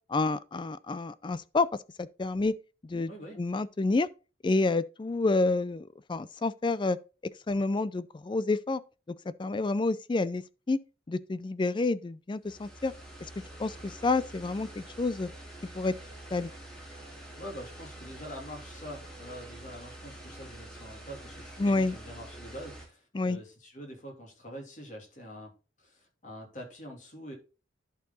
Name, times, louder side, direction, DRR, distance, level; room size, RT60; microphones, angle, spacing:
voice 1, 0.1-1.7 2.0-2.5 2.8-3.1 3.4-4.1 4.4-7.0 7.5-8.8 9.4-10.8 11.1-12.9 13.6-15.3 15.7-15.9 16.3-16.5 21.6-21.9 23.1-23.4, left 3 dB, 25° left, 0.4 m, -28 dB
voice 2, 3.1-3.4 17.4-25.5 25.8-27.3, equal, 40° left, 2.8 m, -45 dB
sound 1, 12.4-22.9, right 1 dB, 5° left, 2.4 m, -47 dB
11.0 x 4.5 x 3.9 m
head